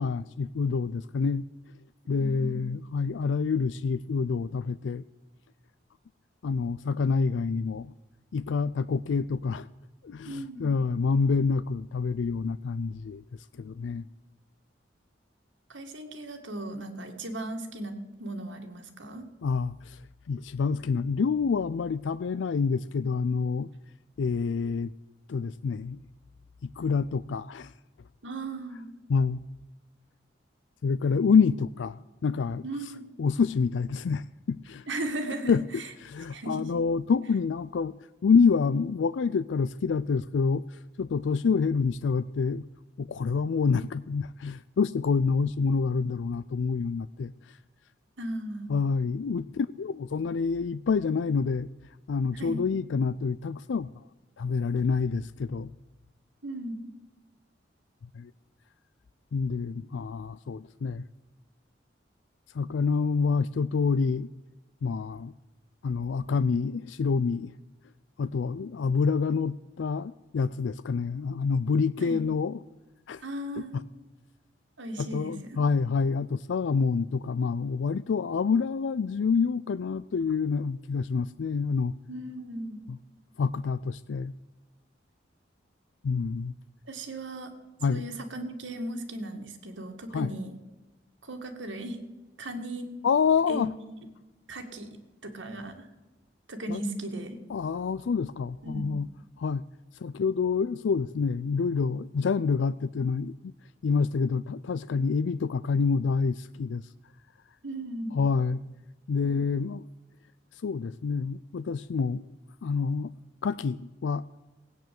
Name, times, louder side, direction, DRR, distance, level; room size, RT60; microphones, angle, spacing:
voice 1, 0.0-1.4 2.1-5.0 6.4-7.9 8.3-9.7 10.0-13.2 13.6-14.0 19.4-20.0 20.3-23.7 24.2-24.9 25.3-26.0 26.6-27.7 29.1-29.4 30.8-32.6 33.2-34.9 35.5-35.6 36.0-37.9 38.2-42.6 43.0-47.3 48.7-51.7 52.1-53.9 54.4-55.7 58.1-58.3 59.3-61.0 62.5-64.3 64.8-65.3 65.8-67.5 68.2-72.6 73.1-73.2 73.7-73.8 75.0-81.9 82.9-83.0 83.4-84.3 86.0-86.5 87.8-88.0 90.1-90.3 93.0-93.7 96.7-96.8 97.5-99.1 99.4-99.6 99.9-103.3 103.8-106.9 108.1-108.6 109.1-109.9 110.6-112.2 112.6-113.1 113.4-114.2, left 5 dB, 80° left, 15 dB, 0.4 m, -27 dB
voice 2, 2.1-2.6 10.3-10.7 15.7-19.3 28.2-28.9 32.6-33.0 34.9-35.9 36.3-36.7 48.2-48.8 52.3-52.6 56.4-56.8 72.0-72.2 73.2-73.8 74.8-75.6 82.1-82.8 86.9-87.5 87.9-90.5 91.2-92.0 92.4-92.9 93.5-94.0 94.5-94.9 95.2-95.9 96.5-97.4 98.6-98.9 107.6-108.2, right 1 dB, 90° right, 5 dB, 2.1 m, -36 dB
16.5 x 9.2 x 7.7 m, 1.1 s
head